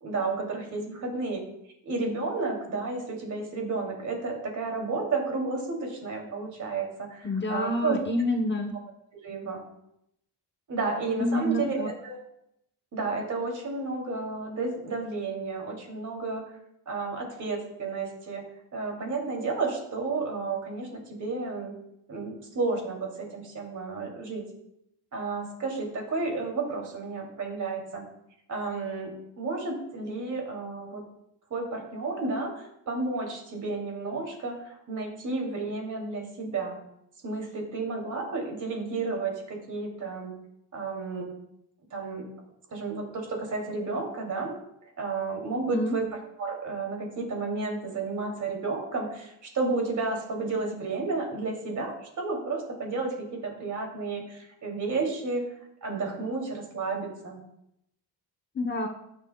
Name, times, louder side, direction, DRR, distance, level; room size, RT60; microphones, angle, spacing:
voice 1, 0.0-1.4 1.8-8.0 9.2-9.6 10.7-12.2 12.9-16.4 16.9-18.4 18.7-21.7 22.1-24.4 25.1-28.0 28.5-31.0 31.5-36.8 37.2-40.3 40.7-41.3 41.9-42.3 42.7-44.5 45.0-46.0 46.4-55.5 55.8-57.4, right 3 dB, 45° right, 1 dB, 2.6 m, -32 dB
voice 2, 7.2-8.7 11.2-11.9 45.6-46.0 58.6-58.9, left 1 dB, 25° left, 4 dB, 0.8 m, -28 dB
18.5 x 7.4 x 2.2 m, 0.79 s
cardioid pair, 145°, 40 cm